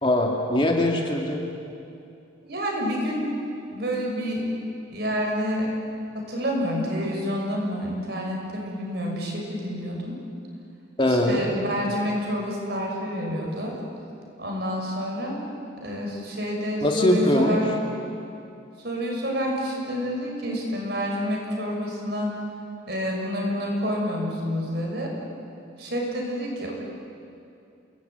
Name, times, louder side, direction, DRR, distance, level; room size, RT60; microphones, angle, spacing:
voice 1, 0.0-1.4 11.0-11.5 16.8-17.6, left 1 dB, 25° left, 1 dB, 2.4 m, -21 dB
voice 2, 2.4-3.3 3.7-4.4 4.9-5.7 6.1-10.2 11.0-13.7 14.4-15.4 15.8-17.7 18.8-22.3 22.9-25.1 25.8-26.7, equal, 55° right, -1 dB, 6.3 m, -28 dB
29.0 x 20.0 x 9.4 m, 2.6 s
head